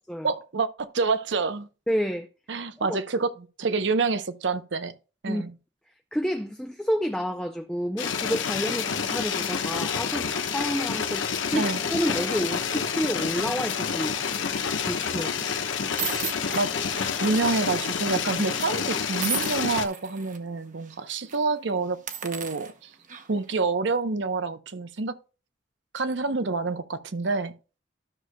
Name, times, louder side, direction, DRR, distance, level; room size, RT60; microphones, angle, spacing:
voice 1, 0.2-1.7 2.5-4.9 5.2-5.5 11.6-11.8 16.5-16.7 17.2-22.9 23.3-25.1 25.9-27.5, right 3 dB, 70° right, 0.7 m, -27 dB
voice 2, 1.9-2.3 2.8-3.0 5.3-5.4 6.1-14.5 14.8-15.5, equal, 5° left, 0.4 m, -30 dB
sound 1, 8.0-19.9, left 6 dB, 90° left, 1.1 m, -28 dB
sound 2, 16.0-17.9 18.2-18.4 19.2-20.4 20.8-21.0 21.3-21.4 21.9-23.5, right 7 dB, 40° right, 1.0 m, -36 dB
13.0 x 6.5 x 2.2 m
head